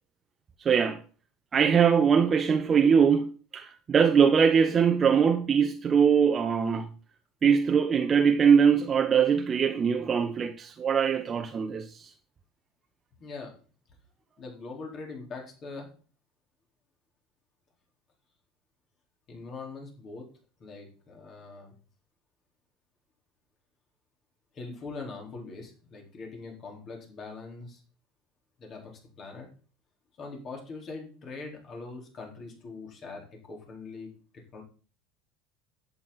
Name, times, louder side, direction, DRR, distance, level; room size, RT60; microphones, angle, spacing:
voice 1, 0.6-1.0 1.5-6.9 7.4-12.1, right 7 dB, 30° right, 0.8 m, -22 dB
voice 2, 13.2-13.5 14.4-15.9 19.3-20.3 20.6-21.8 24.5-27.8 28.6-29.5 30.2-34.1 34.5-34.6, left 3 dB, 40° left, 4.2 m, -42 dB
11.0 x 9.3 x 4.1 m
hypercardioid pair, 75°, 0 cm